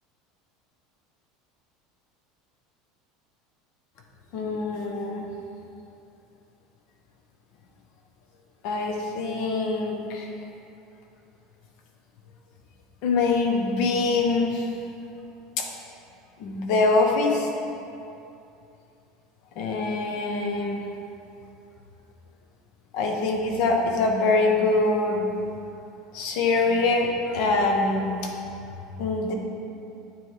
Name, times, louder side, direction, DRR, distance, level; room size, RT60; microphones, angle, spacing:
voice 1, 4.3-5.3 8.6-10.3 13.0-14.7 15.6-15.7 16.4-17.5 19.6-20.8 22.9-25.2 26.1-28.3 29.0-29.3, left 3 dB, 65° left, 1 dB, 0.9 m, -24 dB
9.3 x 3.1 x 3.3 m, 2.7 s
supercardioid pair, 110°, 0 cm